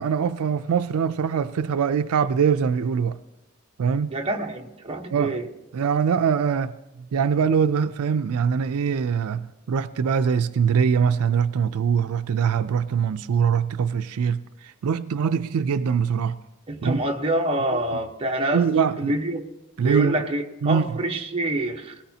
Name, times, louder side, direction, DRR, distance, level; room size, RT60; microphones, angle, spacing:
voice 1, 0.0-3.2 3.8-4.1 5.1-5.3 5.7-6.7 7.0-16.4 16.8-17.0 18.5-19.1 19.8-20.1 20.6-20.8, right 6 dB, 80° right, 0.4 m, -23 dB
voice 2, 4.1-5.5 16.7-19.5 19.8-22.0, right 1 dB, 25° right, 1.0 m, -26 dB
20.0 x 17.5 x 2.8 m
head